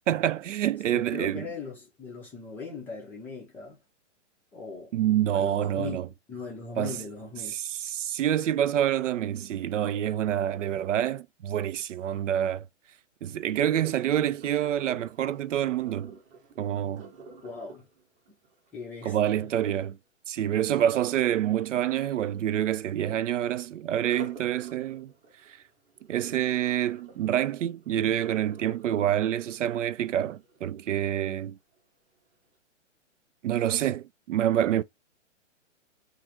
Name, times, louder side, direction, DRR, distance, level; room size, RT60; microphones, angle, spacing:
voice 1, 0.1-1.5 4.9-6.1 6.8-7.0 7.5-12.6 13.2-16.2 16.6-17.1 19.1-20.0 20.3-25.1 26.1-31.6 33.4-34.8, right 11 dB, 75° right, 0.5 m, -27 dB
voice 2, 0.9-3.8 4.5-4.9 5.3-6.0 6.3-7.6 17.4-17.9 18.7-19.5, left 5 dB, 5° left, 0.5 m, -39 dB
Sink (filling or washing), 13.6-19.6 24.0-31.0 31.5-31.8 32.3-32.4, right 2 dB, 20° right, 0.8 m, -50 dB
3.8 x 2.5 x 4.3 m
hypercardioid pair, 145°, 37 cm